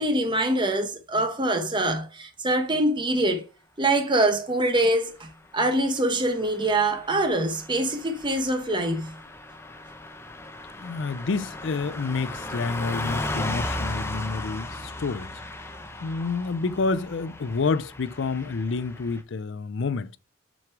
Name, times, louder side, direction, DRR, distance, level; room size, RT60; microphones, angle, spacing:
voice 1, 0.0-3.4 3.8-9.1, right 1 dB, 25° right, 0.9 m, -24 dB
Car passing by / Truck, 6.2-19.2, left 2 dB, 10° left, 0.7 m, -36 dB
voice 2, 10.8-15.4 16.0-20.2, left 4 dB, 60° left, 0.5 m, -29 dB
6.1 x 5.2 x 4.6 m
head